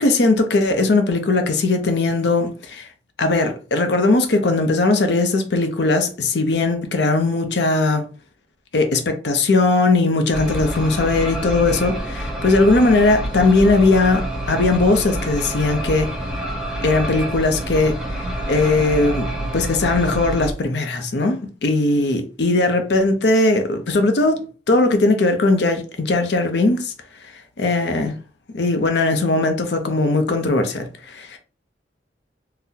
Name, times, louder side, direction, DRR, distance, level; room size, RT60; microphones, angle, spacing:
voice 1, 0.0-2.9 3.2-8.0 8.7-16.1 16.8-18.0 18.5-26.9 27.2-27.3 27.6-28.1 28.5-31.4, left 2 dB, 70° left, 0.6 m, -19 dB
sound 1, 10.3-20.5, right 1 dB, 5° right, 0.5 m, -27 dB
3.9 x 2.0 x 2.7 m
head